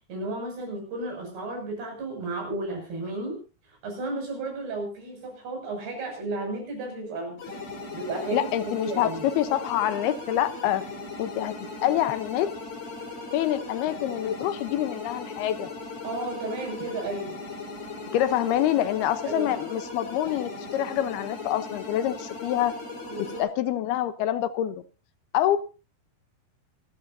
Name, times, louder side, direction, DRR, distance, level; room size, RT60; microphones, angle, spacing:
voice 1, 0.1-3.4 3.7-7.4 7.9-8.5 8.8-9.2 16.0-17.4 18.4-18.5 19.3-19.5 23.1-23.5, right 2 dB, 75° right, 2 dB, 8.7 m, -33 dB
sound 1, 7.4-23.4, left 3 dB, 60° left, 5.9 m, -38 dB
voice 2, 8.3-10.8 11.2-11.5 11.8-12.5 13.3-15.7 18.1-22.7 23.2-24.8 25.3-25.6, left 12 dB, 75° left, 12 dB, 2.8 m, -26 dB
25.5 x 13.5 x 2.7 m, 0.33 s
omnidirectional pair, 4.8 m